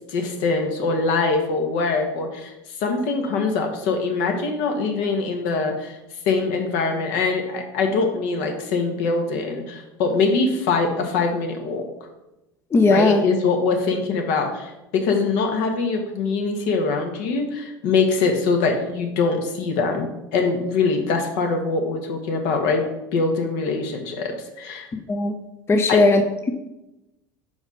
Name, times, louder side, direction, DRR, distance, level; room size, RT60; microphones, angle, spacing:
voice 1, 0.1-2.5 2.8-6.0 6.2-11.9 12.9-24.9 25.9-26.0, left 4 dB, 65° left, 4 dB, 1.4 m, -23 dB
voice 2, 12.7-13.2 25.1-25.3 25.7-26.5, left 2 dB, 20° left, 6 dB, 0.6 m, -18 dB
5.0 x 5.0 x 5.5 m, 0.96 s
hypercardioid pair, 85°, 11 cm